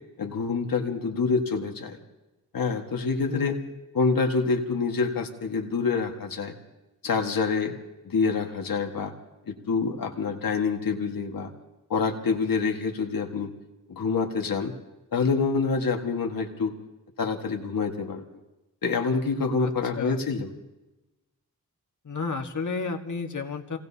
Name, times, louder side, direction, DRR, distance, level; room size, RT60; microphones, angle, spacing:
voice 1, 0.2-2.0 2.5-3.6 3.9-6.5 7.0-7.7 8.0-9.1 9.5-11.5 11.9-13.5 13.9-14.7 15.1-16.7 17.2-18.2 18.8-20.5, left 4 dB, 80° left, 3 dB, 1.7 m, -26 dB
voice 2, 3.3-3.7 19.6-20.2 22.0-23.8, left 4 dB, 60° left, 4 dB, 1.7 m, -32 dB
27.0 x 18.5 x 2.8 m, 1.0 s
cardioid pair, 65°, 34 cm